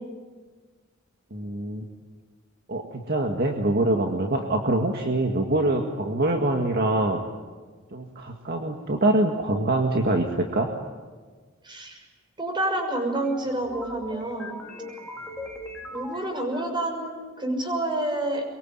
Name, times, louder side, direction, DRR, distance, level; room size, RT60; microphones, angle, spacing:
voice 1, 1.3-1.8 2.7-7.2 7.9-10.7, right 2 dB, 50° right, 2 dB, 2.0 m, -24 dB
voice 2, 11.6-12.0 12.4-14.6 15.9-18.4, right 1 dB, 25° right, 3 dB, 6.4 m, -28 dB
sound 1, 12.9-17.1, left 1 dB, 5° left, 3.9 m, -40 dB
24.0 x 23.5 x 9.2 m, 1.4 s
head